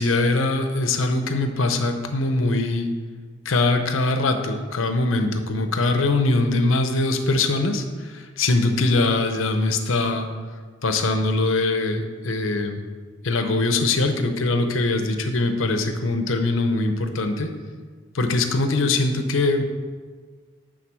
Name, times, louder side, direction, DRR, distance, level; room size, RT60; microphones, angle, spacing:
voice 1, 0.0-2.9 3.4-10.3 10.8-12.8 13.2-17.5 18.1-19.6, left 2 dB, 80° left, 7 dB, 0.8 m, -22 dB
9.1 x 3.9 x 6.1 m, 1.5 s
head